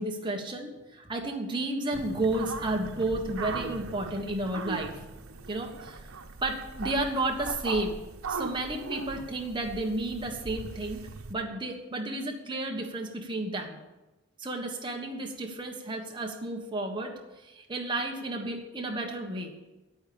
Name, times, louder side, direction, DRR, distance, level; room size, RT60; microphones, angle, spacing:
voice 1, 0.0-4.9 5.5-6.1 6.4-8.0 8.3-13.8 14.4-19.5, right 2 dB, 20° right, 1 dB, 1.4 m, -32 dB
sound 1, 1.9-11.3, right 3 dB, 85° right, 1.0 m, -39 dB
10.5 x 8.9 x 7.0 m, 1.1 s
head